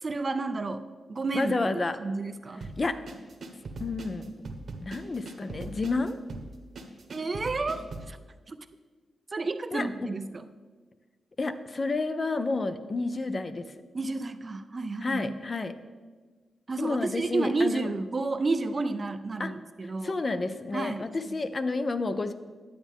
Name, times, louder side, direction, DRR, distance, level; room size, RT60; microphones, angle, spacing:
voice 1, 0.0-1.5 2.0-2.7 7.1-8.2 8.5-8.6 9.3-10.5 13.9-15.3 16.7-20.1 20.7-21.0, right 3 dB, 30° right, 11 dB, 0.4 m, -31 dB
voice 2, 1.3-2.0 2.6-3.0 3.8-4.3 4.8-6.2 9.7-9.9 11.4-13.7 15.0-15.8 16.8-17.9 19.4-19.6 19.8-22.3, left 3 dB, 30° left, 11 dB, 0.4 m, -30 dB
sound 1, 2.6-8.1, right 3 dB, 55° right, 1.0 m, -40 dB
10.0 x 8.3 x 3.6 m, 1.4 s
wide cardioid pair, 130°, 0 cm